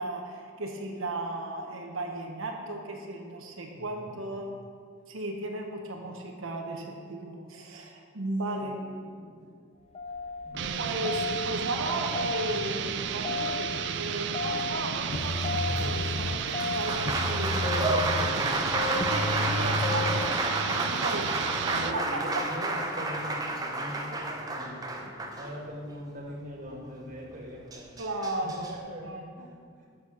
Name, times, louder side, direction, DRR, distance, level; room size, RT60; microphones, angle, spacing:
voice 1, 0.0-4.5 5.1-8.8 10.8-17.9 18.9-22.1 28.0-28.7 29.0-29.2, right 2 dB, 85° right, 1 dB, 1.0 m, -35 dB
voice 2, 3.7-4.2 8.6-8.7 9.0-9.5 10.1-10.9 14.7-14.8 17.7-18.7 21.5-27.9 28.4-29.9, equal, 40° right, -2 dB, 1.7 m, -42 dB
sound 1, 9.9-20.3, left 3 dB, 30° left, 0.4 m, -33 dB
sound 2, 10.5-22.0, right 8 dB, 60° right, 0.4 m, -33 dB
Applause, 15.7-25.9 27.3-27.4 27.7-28.7, right 2 dB, 20° right, 0.6 m, -31 dB
7.5 x 6.1 x 6.2 m, 2.1 s
head